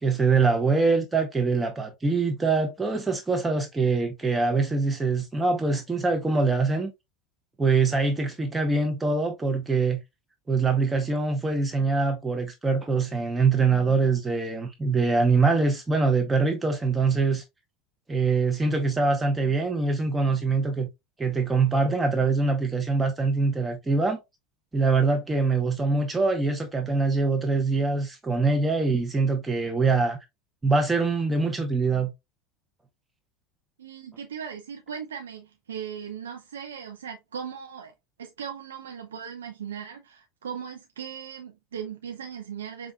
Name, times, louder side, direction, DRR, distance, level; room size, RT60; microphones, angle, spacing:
voice 1, 0.0-6.9 7.6-10.0 10.5-17.4 18.1-20.9 21.2-24.2 24.7-30.2 30.6-32.1, right 4 dB, 15° right, 0.8 m, -24 dB
voice 2, 33.8-37.9 38.2-42.9, right 7 dB, 90° right, 0.5 m, -38 dB
5.5 x 2.5 x 2.2 m
hypercardioid pair, 90°, 0 cm